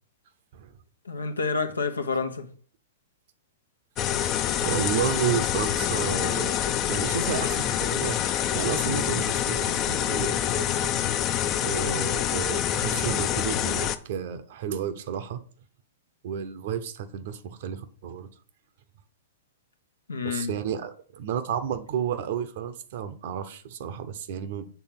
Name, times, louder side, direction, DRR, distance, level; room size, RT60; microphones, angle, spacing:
voice 1, 1.0-2.5 11.8-12.1 20.1-20.5, left 4 dB, 85° left, 0.9 m, -29 dB
sound 1, 4.0-14.0, left 10 dB, 35° left, 0.5 m, -26 dB
voice 2, 4.1-10.9 11.6-15.4 16.2-18.3 20.2-24.7, right 8 dB, 55° right, 0.8 m, -32 dB
7.0 x 3.5 x 5.9 m
hypercardioid pair, 110°, 0 cm